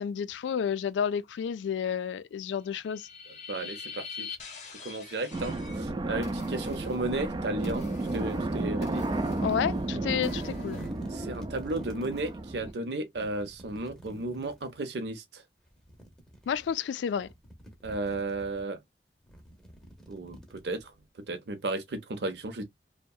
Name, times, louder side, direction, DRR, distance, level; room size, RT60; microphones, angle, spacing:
voice 1, 0.0-3.1 9.4-10.8 16.5-17.3, left 7 dB, 90° left, 0.3 m, -30 dB
sound 1, 2.6-5.8 6.2-10.9, left 5 dB, 40° left, 0.7 m, -45 dB
voice 2, 3.5-4.3 4.8-7.8 8.1-9.0 11.1-15.4 17.8-18.8 20.1-20.9 21.3-22.6, right 2 dB, 70° right, 0.6 m, -34 dB
sound 2, 5.3-12.7, right 2 dB, 25° right, 0.3 m, -33 dB
sound 3, 10.7-12.4 13.2-14.8 15.7-16.7 17.1-18.6 19.2-21.0, right 1 dB, 5° left, 0.7 m, -48 dB
2.7 x 2.1 x 2.2 m
head